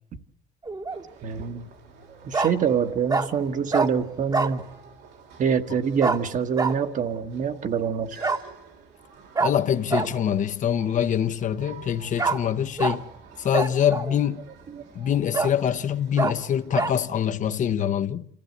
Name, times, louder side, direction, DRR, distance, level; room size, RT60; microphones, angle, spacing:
Bark, 0.6-1.0 2.3-2.5 3.1-3.3 3.7-3.9 4.3-4.6 6.0-6.2 6.6-6.7 8.2-8.4 9.4-9.5 9.9-10.1 12.2-12.4 12.8-13.0 13.5-14.2 14.7-14.8 15.3-15.5 16.2-16.3 16.7-16.9, right 4 dB, 20° right, 1.2 m, -24 dB
sound 1, 0.9-17.1, right 6 dB, 85° right, 4.0 m, -50 dB
voice 1, 1.2-1.7 2.2-4.6 5.4-8.2 14.7-14.8, right 7 dB, 50° right, 1.4 m, -25 dB
voice 2, 9.4-13.1 13.4-14.5 14.9-18.3, left 9 dB, 50° left, 0.9 m, -24 dB
26.5 x 15.0 x 8.1 m
cardioid pair, 110°, 17 cm